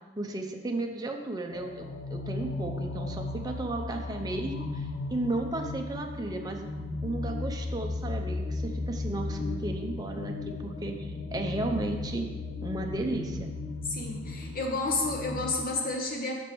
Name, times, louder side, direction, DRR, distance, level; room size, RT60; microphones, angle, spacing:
voice 1, 0.2-6.7 7.0-12.3 12.6-13.5, right 2 dB, 20° right, 3 dB, 0.5 m, -34 dB
sound 1, 1.5-15.5, left 3 dB, 80° left, 0.7 m, -36 dB
voice 2, 13.8-16.3, left 3 dB, 50° left, 1 dB, 1.0 m, -30 dB
6.0 x 4.7 x 4.5 m, 1.3 s
head